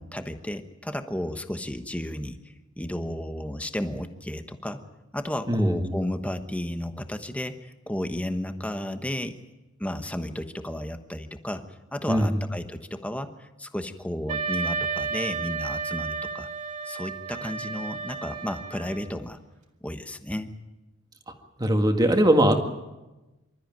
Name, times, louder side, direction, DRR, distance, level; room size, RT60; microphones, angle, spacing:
voice 1, 0.0-2.4 2.8-4.8 5.1-9.4 9.8-16.5 16.9-19.4 19.8-20.5, left 1 dB, 5° left, 8 dB, 1.1 m, -33 dB
voice 2, 5.5-5.9 12.1-12.3 21.6-22.5, right 1 dB, 20° right, 5 dB, 1.9 m, -20 dB
Wind instrument woodwind instrument, 14.3-19.2, right 5 dB, 35° right, 2.1 m, -32 dB
26.0 x 13.5 x 9.2 m, 1.1 s
head